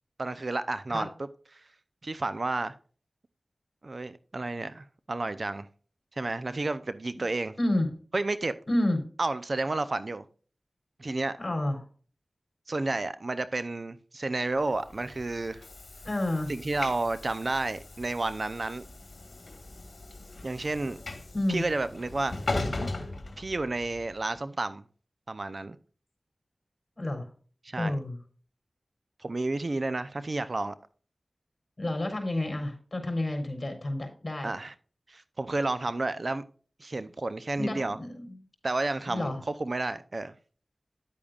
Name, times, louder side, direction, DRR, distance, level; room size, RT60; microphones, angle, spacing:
voice 1, 0.2-1.1 2.0-2.7 3.8-5.7 6.2-7.5 8.1-8.5 9.2-10.2 11.0-11.4 12.7-15.6 16.5-18.8 20.4-21.0 21.5-22.3 23.4-24.8 25.3-25.8 27.6-27.9 29.2-30.7 34.4-34.7 35.1-36.4 36.8-38.0 38.6-39.3 39.6-40.3, right 2 dB, 55° right, 0.6 m, -31 dB
voice 2, 7.6-7.9 8.7-9.0 11.4-11.9 16.0-16.5 21.3-21.6 27.0-27.3 27.8-28.2 31.8-34.5 37.6-38.4 39.1-39.4, left 1 dB, 40° left, 3.9 m, -30 dB
Train / Sliding door, 14.8-24.0, left 2 dB, 65° left, 1.6 m, -38 dB
10.0 x 8.7 x 2.4 m
wide cardioid pair, 50°, 0 cm